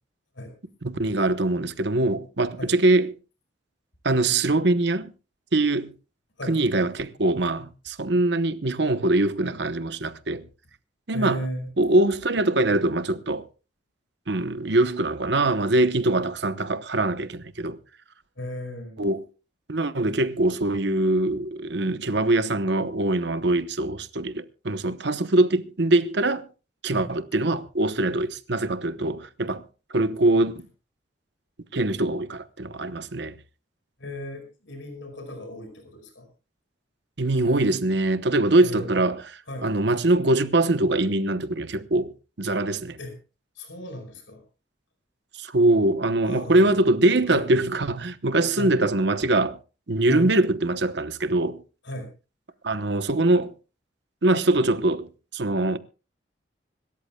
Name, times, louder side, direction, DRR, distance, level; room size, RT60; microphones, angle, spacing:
voice 1, 0.8-3.2 4.0-5.1 5.5-5.9 6.5-10.5 11.1-11.4 11.8-13.5 14.3-17.8 19.0-19.3 19.7-26.5 26.8-29.6 29.9-30.7 31.7-33.4 37.2-43.0 45.4-49.6 49.9-51.6 52.6-53.5 54.2-55.8, right 2 dB, 65° right, 0.9 m, -23 dB
voice 2, 11.1-11.7 18.4-19.0 26.9-27.1 34.0-36.3 38.6-39.0 39.5-39.7 43.0-43.2 43.5-44.4 46.2-46.8 47.3-47.5 48.5-48.7 50.1-50.3 51.8-52.1, left 1 dB, 80° left, 5.1 m, -36 dB
26.0 x 13.5 x 2.3 m
head